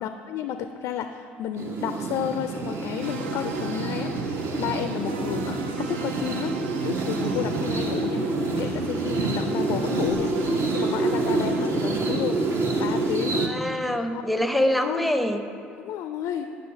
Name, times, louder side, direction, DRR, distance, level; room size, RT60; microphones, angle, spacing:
voice 1, 0.0-4.1 4.6-6.5 6.8-8.3 8.6-12.4 12.8-13.5 14.1-14.2 14.5-15.1 15.8-16.5, left 9 dB, 60° left, 8 dB, 0.3 m, -31 dB
sound 1, 1.6-13.5, right 3 dB, 50° right, 0.8 m, -27 dB
sound 2, 1.8-5.5, right 1 dB, 20° right, 1.4 m, -49 dB
sound 3, 3.0-12.3, right 4 dB, 75° right, 0.5 m, -37 dB
voice 2, 13.3-15.4, left 1 dB, ahead, 7 dB, 0.6 m, -25 dB
8.3 x 5.6 x 4.9 m, 2.6 s
figure-of-eight pair, 55°, 6 cm